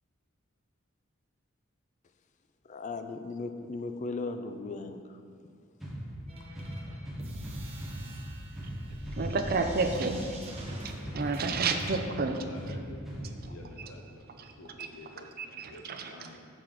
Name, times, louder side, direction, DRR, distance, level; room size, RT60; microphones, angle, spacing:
voice 1, 2.7-5.2, left 3 dB, 35° left, 8 dB, 0.3 m, -37 dB
sound 1, 5.8-13.8, equal, ahead, 0.9 m, -40 dB
sound 2, 6.3-11.9, equal, 30° right, 1.0 m, -43 dB
voice 2, 8.6-10.4 11.1-12.8 13.4-13.9 14.4-14.9 15.4-16.3, right 3 dB, 45° right, 6 dB, 0.5 m, -32 dB
voice 3, 10.7-11.2 12.3-15.3 15.5-16.4, left 2 dB, 80° left, 2 dB, 0.6 m, -50 dB
6.6 x 6.1 x 3.7 m, 2.2 s
head